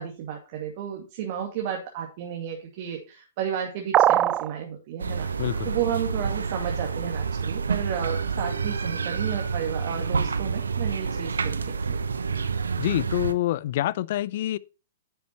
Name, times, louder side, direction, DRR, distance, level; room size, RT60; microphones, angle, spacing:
voice 1, 0.0-5.3 5.6-12.0, right 9 dB, 50° right, 2.4 m, -32 dB
sound 1, 3.9-4.5, right 12 dB, 30° right, 0.6 m, -19 dB
sound 2, 5.0-13.3, right 5 dB, 80° right, 0.9 m, -28 dB
voice 2, 5.4-5.7 12.8-14.6, left 14 dB, 55° left, 0.6 m, -26 dB
10.5 x 7.1 x 4.3 m
hypercardioid pair, 120°, 0 cm